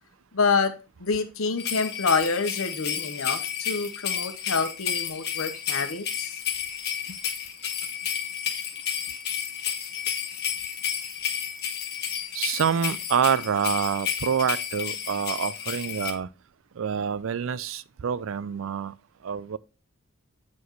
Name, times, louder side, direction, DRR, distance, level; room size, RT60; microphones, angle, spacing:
voice 1, 0.3-0.7 1.0-6.4, left 4 dB, 75° left, 1.0 m, -27 dB
sound 1, 1.6-16.1, left 8 dB, 50° left, 1.4 m, -31 dB
voice 2, 12.3-16.3 16.8-18.9 19.2-19.6, right 7 dB, 65° right, 0.4 m, -27 dB
8.4 x 4.7 x 3.1 m
head